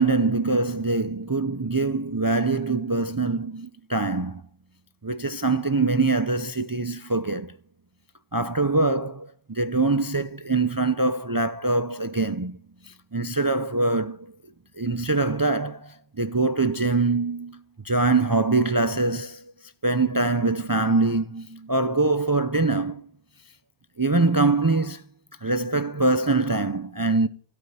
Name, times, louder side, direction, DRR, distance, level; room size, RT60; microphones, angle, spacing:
voice 1, 0.0-4.4 5.0-7.6 8.3-14.4 14.8-23.1 24.0-25.0 25.4-27.3, right 3 dB, 25° right, 0.5 m, -24 dB
16.5 x 5.8 x 9.3 m
omnidirectional pair, 1.1 m